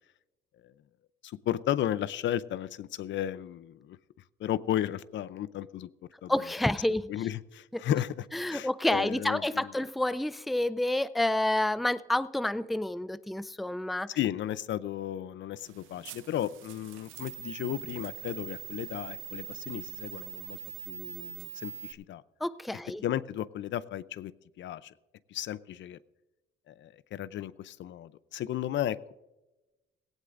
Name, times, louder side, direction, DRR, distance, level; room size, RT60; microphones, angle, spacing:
voice 1, 1.2-4.0 4.4-5.9 6.2-6.3 7.1-8.3 8.5-9.7 14.2-20.6 20.9-22.2 23.0-24.9 25.3-26.0 26.7-29.1, left 11 dB, 70° left, 16 dB, 0.6 m, -34 dB
voice 2, 6.3-7.1 7.7-7.8 8.3-14.1 22.4-23.0, left 1 dB, ahead, 16 dB, 0.4 m, -29 dB
sound 1, 15.6-21.9, right 13 dB, 90° right, 0.6 m, -43 dB
17.0 x 16.5 x 2.5 m, 1.0 s
cardioid pair, 90°, 20 cm